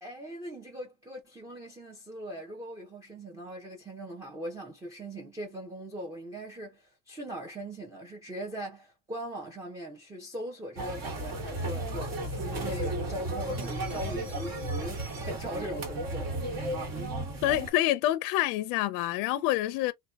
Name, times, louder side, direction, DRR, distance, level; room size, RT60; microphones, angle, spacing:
voice 1, 0.0-16.3, right 1 dB, 10° right, 0.6 m, -40 dB
sound 1, 10.8-17.7, right 1 dB, 50° right, 1.5 m, -34 dB
voice 2, 17.4-19.9, left 14 dB, 65° left, 0.5 m, -27 dB
2.8 x 2.2 x 2.3 m
cardioid pair, 135°, 33 cm